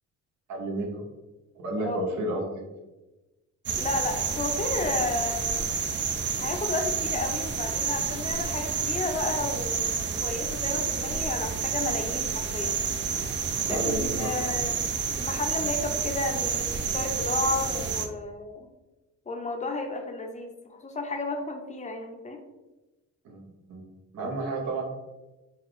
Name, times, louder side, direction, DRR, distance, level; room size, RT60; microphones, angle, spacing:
voice 1, 0.5-1.0 1.5-2.4 13.6-14.5 23.2-23.4 23.7-23.9 24.1-24.8, right 2 dB, 70° right, -1 dB, 1.2 m, -31 dB
sound 1, 3.7-18.1, right 6 dB, 40° right, 0.5 m, -29 dB
voice 2, 3.8-5.7 6.4-12.8 13.7-14.8 15.2-18.7 19.3-22.4, left 3 dB, 25° left, 3 dB, 0.7 m, -32 dB
4.5 x 2.4 x 3.2 m, 1.1 s
cardioid pair, 90°, 30 cm